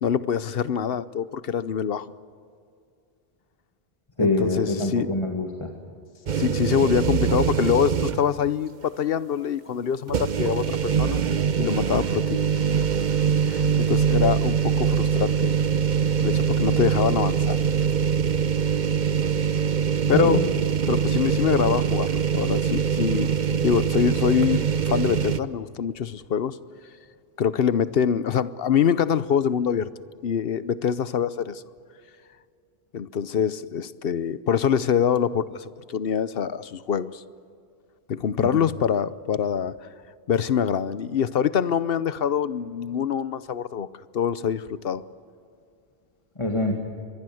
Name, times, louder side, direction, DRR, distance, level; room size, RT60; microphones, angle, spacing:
voice 1, 0.0-2.1 4.2-5.1 6.3-11.2 11.6-12.4 13.5-15.5 16.2-17.6 20.1-20.4 20.9-23.3 23.6-26.6 27.4-29.9 30.2-31.6 32.9-37.2 38.1-39.7 40.3-43.9 44.1-45.0, left 8 dB, 65° left, 16 dB, 1.0 m, -24 dB
voice 2, 4.2-5.7 20.1-20.4 38.4-38.6 46.4-46.7, left 2 dB, 30° left, 2 dB, 2.2 m, -24 dB
sound 1, 6.3-8.4 8.8-8.9 10.1-25.4, right 7 dB, 50° right, 0.9 m, -23 dB
25.0 x 21.5 x 7.8 m, 2.4 s
omnidirectional pair, 1.1 m